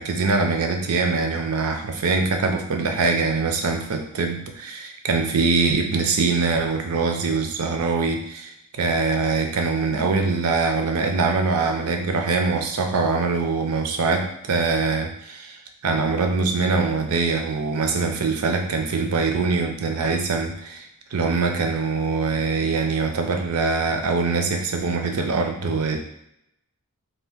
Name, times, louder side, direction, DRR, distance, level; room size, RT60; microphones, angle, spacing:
voice 1, 0.0-15.6 15.8-26.0, right 4 dB, 75° right, 4 dB, 0.5 m, -23 dB
2.8 x 2.4 x 3.5 m, 0.78 s
head